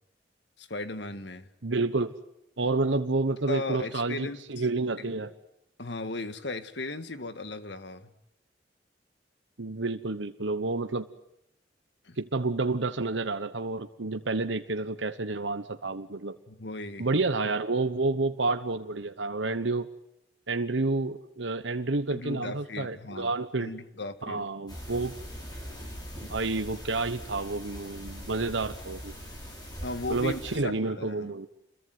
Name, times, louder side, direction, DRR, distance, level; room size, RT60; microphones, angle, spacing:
voice 1, 0.6-1.5 3.5-4.7 5.0-5.1 5.8-8.1 12.0-12.2 16.5-17.1 22.1-23.3 23.6-24.5 29.8-31.3, left 2 dB, 70° left, 1.8 m, -37 dB
voice 2, 1.6-2.1 2.6-5.3 9.6-11.1 12.2-16.4 17.0-19.9 20.5-23.7 24.2-25.1 26.3-29.1 30.1-31.5, right 3 dB, 85° right, 1.2 m, -29 dB
sound 1, 24.7-30.6, equal, 25° left, 7.0 m, -41 dB
28.0 x 22.0 x 9.5 m
head